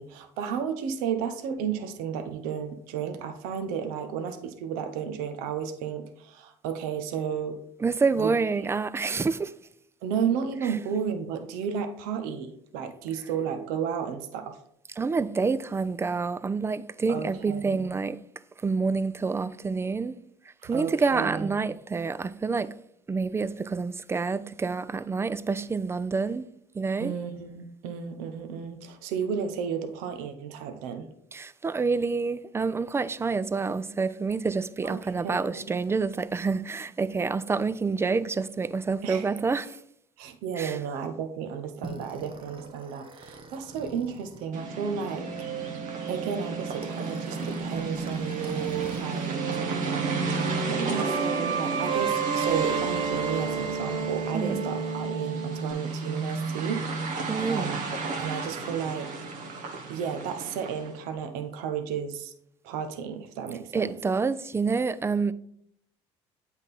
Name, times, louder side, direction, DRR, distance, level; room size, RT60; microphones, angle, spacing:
voice 1, 0.0-7.6 8.2-8.3 10.0-14.6 17.1-17.9 20.6-21.5 27.0-31.1 34.8-34.9 35.2-35.4 39.0-39.3 40.2-45.3 46.1-49.4 50.7-57.8 58.2-59.1 59.9-62.3 62.6-63.9, right 7 dB, 75° right, 0.8 m, -33 dB
voice 2, 7.8-9.5 10.6-10.8 14.9-18.2 18.6-20.2 20.5-22.8 23.1-26.5 26.7-27.2 31.3-39.8 40.5-40.8 54.3-54.6 57.3-57.8 63.7-65.3, right 4 dB, 15° right, 0.4 m, -28 dB
sound 1, 41.8-49.0 49.3-55.7, right 6 dB, 35° right, 0.8 m, -33 dB
sound 2, 44.5-61.0, right 3 dB, 55° right, 1.1 m, -33 dB
8.0 x 3.6 x 4.2 m
supercardioid pair, 75°, 15 cm